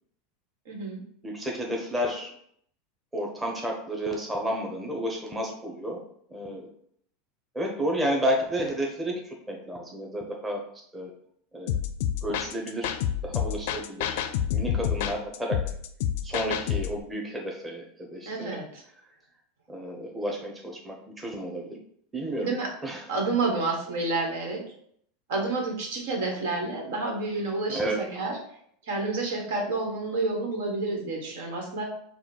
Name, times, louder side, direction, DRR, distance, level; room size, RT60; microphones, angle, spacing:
voice 1, 0.6-1.0 18.2-18.8 22.4-22.7 23.1-24.6 25.3-28.4 28.8-31.9, right 3 dB, 80° right, 0 dB, 1.4 m, -29 dB
voice 2, 1.2-2.3 3.1-6.0 6.3-6.7 7.5-10.6 10.9-11.1 11.5-11.7 12.2-14.2 14.5-15.7 16.2-18.6 19.7-21.8 22.1-22.5 22.8-23.0 27.7-28.0, equal, 10° right, 0 dB, 0.9 m, -31 dB
sound 1, 11.7-17.0, left 9 dB, 70° left, 0.4 m, -29 dB
4.9 x 2.3 x 4.5 m, 0.67 s
supercardioid pair, 125°, 0 cm